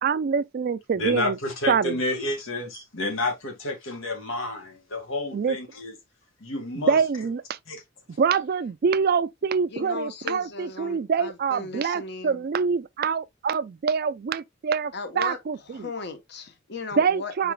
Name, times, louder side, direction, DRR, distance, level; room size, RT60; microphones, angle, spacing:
voice 1, 0.0-1.4 1.7-2.0 5.3-5.6 6.9-7.6 8.2-15.9 17.0-17.5, right 6 dB, 50° right, 0.4 m, -25 dB
voice 2, 1.0-5.9 6.4-7.0 7.7-7.8 8.1-8.2, left 2 dB, 85° left, 1.8 m, -30 dB
voice 3, 9.7-12.4 14.9-15.4 15.7-17.5, left 4 dB, 55° left, 0.9 m, -36 dB
4.9 x 4.5 x 2.2 m
head